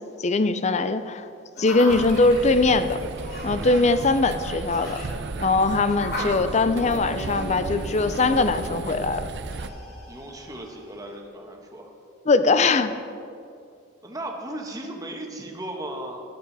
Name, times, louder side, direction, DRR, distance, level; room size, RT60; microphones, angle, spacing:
voice 1, 0.2-1.3 1.6-3.0 3.4-5.0 5.4-9.3 12.3-12.9, left 3 dB, 35° left, 11 dB, 0.5 m, -21 dB
sound 1, 1.5-11.1, equal, 55° left, 3.3 m, -37 dB
sound 2, 1.9-9.7, right 3 dB, 60° right, 0.6 m, -34 dB
voice 2, 10.1-11.9 14.0-16.2, right 1 dB, 20° right, 1 dB, 1.3 m, -36 dB
13.5 x 11.5 x 4.1 m, 2.4 s
head